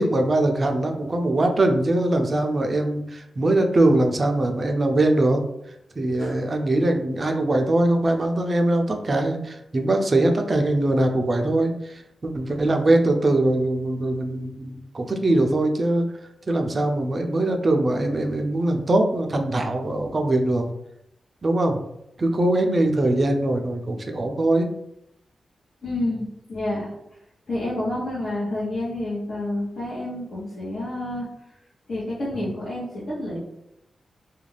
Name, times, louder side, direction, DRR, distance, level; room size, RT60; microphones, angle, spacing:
voice 1, 0.0-5.4 6.0-11.9 12.2-16.1 16.5-20.7 21.4-21.8 22.2-24.7, right 1 dB, 35° right, 4 dB, 0.4 m, -22 dB
voice 2, 25.8-26.9 27.5-31.3 31.9-33.4, left 1 dB, 70° left, -9 dB, 0.9 m, -29 dB
2.4 x 2.2 x 3.2 m, 0.81 s
wide cardioid pair, 120°, 0 cm